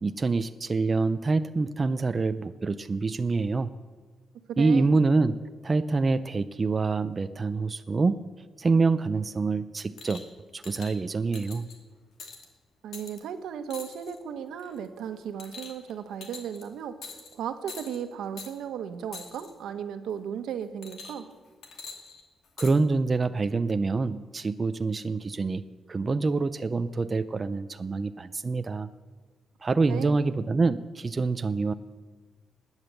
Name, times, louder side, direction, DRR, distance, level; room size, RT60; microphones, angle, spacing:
voice 1, 0.0-3.7 4.6-5.4 5.6-8.2 8.6-10.2 10.5-11.7 22.6-25.6 25.9-28.9 29.6-31.7, right 3 dB, 20° right, 10 dB, 0.4 m, -26 dB
voice 2, 4.5-5.0 12.8-17.0 17.3-21.3 29.9-30.2, right 8 dB, 80° right, 9 dB, 1.3 m, -35 dB
sound 1, 10.0-10.3 10.6-10.9 11.3-11.8 12.2-12.4 12.9-13.2 13.7-14.2 14.6-14.9 15.4-15.9 16.2-16.6 17.0-17.3 17.7-18.0 18.4-18.5 19.1-19.5 20.8-21.3 21.6-22.7 23.6-23.7, left 4 dB, 60° left, 2.3 m, -43 dB
20.5 x 8.8 x 7.8 m, 1.4 s
wide cardioid pair, 175°, 0 cm